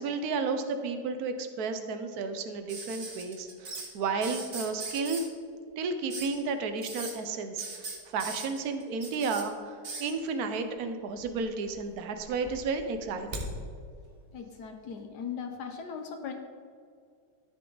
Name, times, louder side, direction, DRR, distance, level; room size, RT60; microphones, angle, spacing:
voice 1, 0.0-5.3 5.8-13.5, right 4 dB, 65° right, 8 dB, 0.9 m, -32 dB
sound 1, 2.7-3.9 4.2-5.3 6.1-6.4 6.8-7.1 7.6-9.4 9.8-10.1 11.2-11.8 12.1-13.5 14.8-14.9, right 2 dB, 35° right, 1.1 m, -39 dB
voice 2, 14.3-16.3, left 6 dB, 65° left, 5 dB, 1.1 m, -38 dB
13.0 x 6.8 x 3.9 m, 2.2 s
omnidirectional pair, 2.4 m